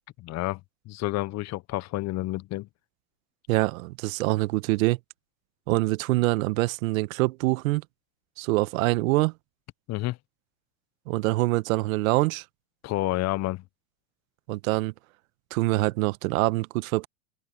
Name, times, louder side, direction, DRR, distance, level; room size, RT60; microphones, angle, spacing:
voice 1, 0.2-0.6 0.9-2.7 9.9-10.2 12.8-13.6, left 18 dB, 35° left, 0.9 m, -29 dB
voice 2, 3.5-5.0 5.7-7.8 8.4-9.3 11.1-12.4 14.5-14.9 15.5-17.1, right 21 dB, 65° right, 1.2 m, -25 dB
hypercardioid pair, 105°, 45 cm